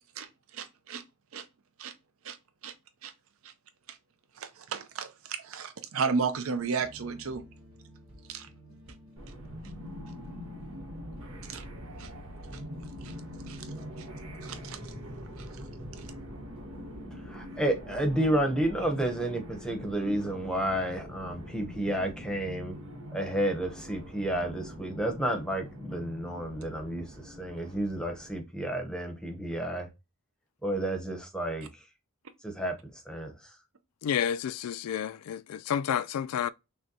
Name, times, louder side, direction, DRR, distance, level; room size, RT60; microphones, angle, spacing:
voice 1, 0.2-1.0 1.3-1.5 1.8-1.9 2.2-2.4 2.6-2.7 3.0-3.1 3.4-3.5 3.9-4.0 4.3-7.5 8.3-8.5 11.4-11.7 12.0-12.1 12.5-12.6 13.0-13.2 13.5-13.7 14.0-14.1 14.4-14.9 15.4-15.6 16.0-16.1, right 5 dB, 65° right, 0.5 m, -34 dB
sound 1, 6.8-17.3, equal, 25° right, 1.7 m, -51 dB
sound 2, 9.2-28.4, equal, 85° right, 1.1 m, -43 dB
voice 2, 17.3-22.8 23.1-29.9 30.6-31.8 32.4-33.5, right 1 dB, 5° left, 0.8 m, -31 dB
voice 3, 34.0-36.5, left 9 dB, 90° left, 0.3 m, -30 dB
6.2 x 2.2 x 2.7 m
head